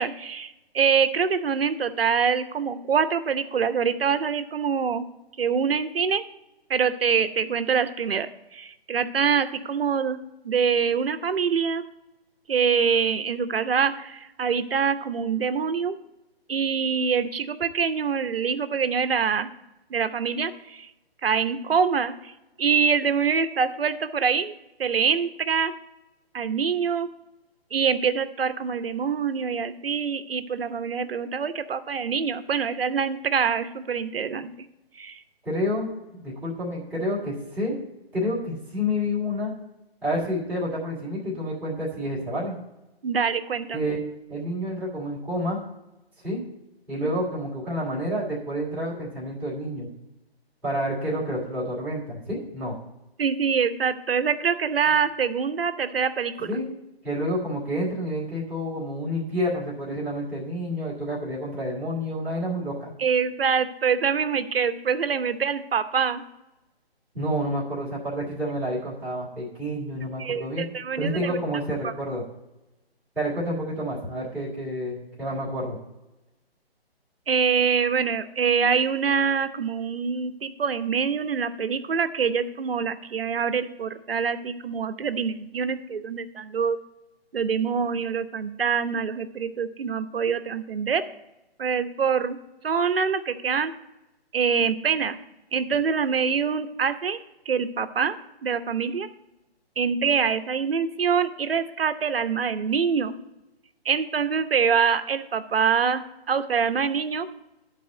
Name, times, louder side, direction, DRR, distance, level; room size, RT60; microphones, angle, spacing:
voice 1, 0.0-5.1 5.4-6.2 6.7-11.8 12.5-16.0 16.5-19.5 19.9-20.9 21.2-22.3 22.6-24.5 24.8-25.7 26.3-27.1 27.7-34.5 35.0-35.2 43.0-43.8 47.0-47.1 53.2-56.5 63.0-66.2 70.2-71.4 77.3-86.8 87.3-91.1 91.6-92.4 92.6-93.7 94.3-95.2 95.5-97.2 97.5-98.2 98.4-99.1 99.8-103.1 103.8-107.3, right 6 dB, 65° right, 11 dB, 0.9 m, -25 dB
voice 2, 35.4-35.9 36.1-37.7 38.1-39.5 40.0-42.5 43.7-44.0 44.3-45.6 46.2-46.4 46.9-49.9 50.6-52.8 56.5-56.7 57.0-62.9 67.1-70.6 71.0-72.2 73.1-75.8, equal, 5° right, -9 dB, 2.8 m, -29 dB
12.0 x 4.3 x 7.6 m, 0.97 s
hypercardioid pair, 150°, 31 cm